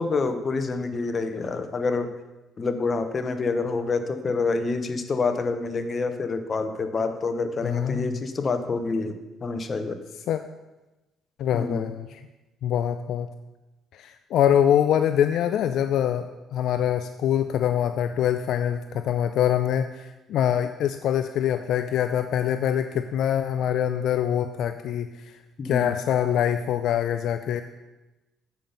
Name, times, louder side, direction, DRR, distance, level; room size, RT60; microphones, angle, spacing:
voice 1, 0.0-2.1 2.6-10.0 11.5-11.9 25.6-25.9, left 3 dB, 35° left, 8 dB, 0.8 m, -27 dB
voice 2, 7.6-8.2 10.3-10.4 11.4-12.2 12.6-13.3 13.9-16.3 16.5-25.3 25.6-27.6, left 10 dB, 70° left, 9 dB, 0.3 m, -24 dB
7.6 x 5.2 x 5.5 m, 1.1 s
cardioid pair, 90°, 0 cm